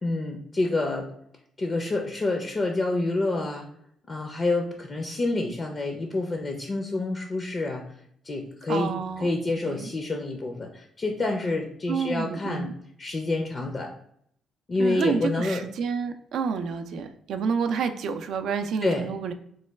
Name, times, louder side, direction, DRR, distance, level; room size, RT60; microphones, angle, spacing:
voice 1, 0.0-1.1 1.6-3.7 4.1-7.8 8.2-8.9 9.2-12.7 13.0-13.9 14.7-15.6 18.8-19.0, left 2 dB, 35° left, 3 dB, 0.4 m, -28 dB
voice 2, 8.7-9.3 9.6-9.9 11.9-12.7 14.8-19.3, right 6 dB, 70° right, 8 dB, 0.3 m, -29 dB
3.0 x 2.2 x 3.3 m, 0.68 s
cardioid pair, 90°, 0 cm